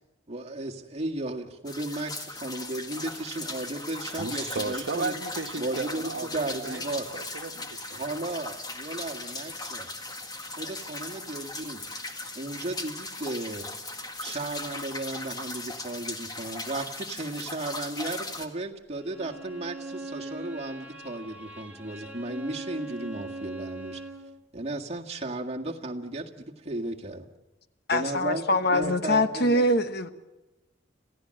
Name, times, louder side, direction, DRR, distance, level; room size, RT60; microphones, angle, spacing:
voice 1, 0.3-5.1 5.6-7.1 7.9-9.9 10.6-11.8 12.3-13.7 14.2-24.0 24.5-27.3 27.9-29.7, right 2 dB, 35° right, 1.8 m, -35 dB
sound 1, 1.7-18.5, left 2 dB, 20° left, 1.8 m, -38 dB
voice 2, 4.2-8.0, right 3 dB, 70° right, 1.3 m, -35 dB
Bowed string instrument, 18.9-24.3, right 2 dB, 10° right, 2.3 m, -41 dB
voice 3, 27.9-30.1, left 1 dB, 55° left, 1.2 m, -24 dB
27.5 x 15.5 x 7.7 m
head